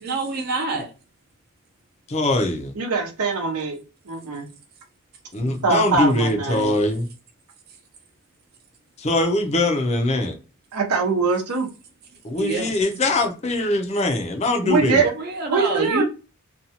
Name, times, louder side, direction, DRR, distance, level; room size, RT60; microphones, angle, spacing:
voice 1, 0.0-0.9 12.4-12.7 15.0-16.0, right 3 dB, 45° right, 0.6 m, -26 dB
voice 2, 2.1-2.7 5.3-7.1 9.0-10.3 12.2-15.1, left 2 dB, 30° left, 0.5 m, -22 dB
voice 3, 2.8-3.8 4.1-4.5 5.4-6.7 10.7-11.7 14.6-15.1 15.5-16.0, right 4 dB, 85° right, 0.7 m, -22 dB
2.6 x 2.3 x 2.8 m
head